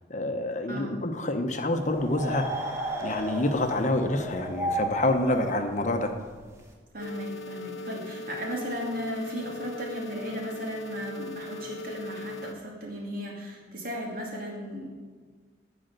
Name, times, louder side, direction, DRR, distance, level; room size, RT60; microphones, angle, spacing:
voice 1, 0.1-2.5 3.0-6.1, left 1 dB, 40° left, 6 dB, 0.9 m, -27 dB
sound 1, 1.8-6.7, right 1 dB, 15° right, 1.5 m, -34 dB
voice 2, 6.9-14.9, equal, 50° right, -2 dB, 2.4 m, -36 dB
sound 2, 7.0-12.5, left 2 dB, 80° left, 0.6 m, -39 dB
13.5 x 5.0 x 6.6 m, 1.5 s
head